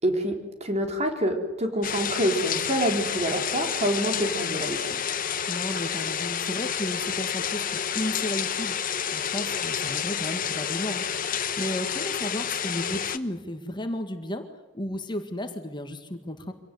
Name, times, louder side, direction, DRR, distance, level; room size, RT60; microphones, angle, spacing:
voice 1, 0.0-4.8, equal, 35° right, 5 dB, 4.0 m, -27 dB
sound 1, 1.8-13.2, left 8 dB, 45° left, 1.2 m, -29 dB
voice 2, 5.5-14.5 14.7-16.5, left 1 dB, 25° left, 6 dB, 2.0 m, -34 dB
25.5 x 18.0 x 9.5 m, 1.1 s
head